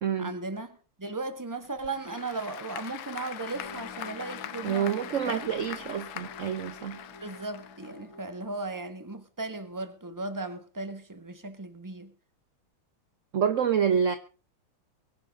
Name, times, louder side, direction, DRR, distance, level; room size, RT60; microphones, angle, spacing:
voice 1, 0.2-5.0 5.2-5.5 7.2-12.1, right 3 dB, 10° right, 1.1 m, -36 dB
Applause / Crowd, 1.6-8.2, left 11 dB, 90° left, 1.9 m, -42 dB
sound 1, 3.5-8.8, left 2 dB, 55° left, 5.5 m, -48 dB
voice 2, 4.6-7.0 13.3-14.2, right 7 dB, 55° right, 0.8 m, -27 dB
23.5 x 10.5 x 3.7 m
omnidirectional pair, 2.4 m